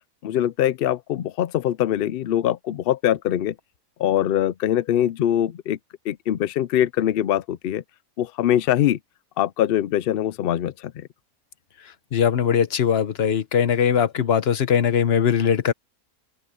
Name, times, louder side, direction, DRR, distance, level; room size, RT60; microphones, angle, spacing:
voice 1, 0.2-3.5 4.0-5.8 6.1-7.8 8.2-9.0 9.4-11.1, left 11 dB, 85° left, 0.5 m, -23 dB
voice 2, 12.1-15.7, left 8 dB, 50° left, 1.0 m, -20 dB
open air
omnidirectional pair, 1.6 m